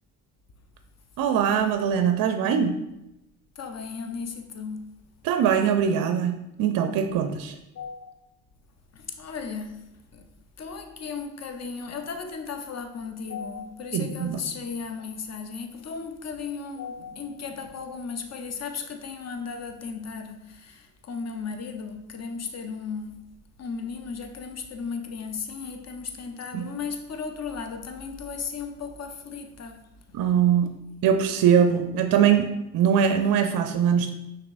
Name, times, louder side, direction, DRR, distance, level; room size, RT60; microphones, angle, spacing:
voice 1, 1.2-2.8 5.2-7.5 13.9-14.4 26.5-26.7 30.1-30.7 31.0-34.1, right 8 dB, 50° right, 0.5 m, -22 dB
voice 2, 3.6-4.9 7.7-8.1 8.9-10.3 10.6-23.2 23.6-29.8, left 5 dB, 35° left, 0.7 m, -35 dB
5.8 x 3.0 x 2.5 m
hypercardioid pair, 50°, 46 cm